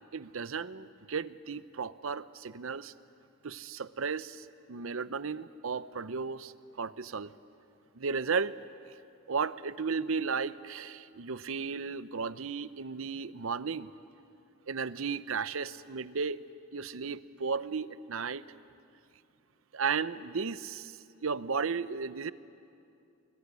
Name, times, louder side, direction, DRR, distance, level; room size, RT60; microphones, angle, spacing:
voice 1, 0.1-2.9 3.4-7.3 7.9-8.5 8.9-9.0 9.3-13.9 14.7-16.4 16.7-18.4 19.7-22.3, right 5 dB, 75° right, 15 dB, 0.7 m, -34 dB
24.0 x 21.5 x 9.9 m, 2.6 s
head